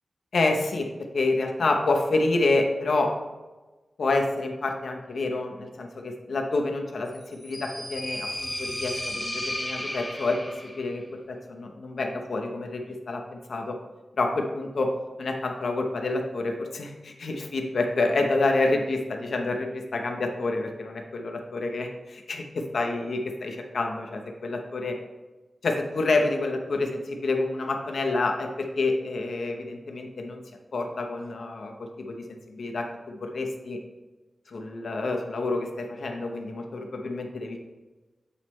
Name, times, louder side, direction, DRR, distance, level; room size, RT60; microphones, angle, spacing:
voice 1, 0.3-3.1 4.0-13.8 14.2-14.9 15.2-25.0 25.6-30.4 30.7-33.8 34.5-37.6, left 2 dB, 70° left, 3 dB, 0.8 m, -28 dB
sound 1, 7.1-10.9, left 1 dB, ahead, 1.3 m, -34 dB
8.0 x 3.1 x 4.3 m, 1.2 s
wide cardioid pair, 140°, 0 cm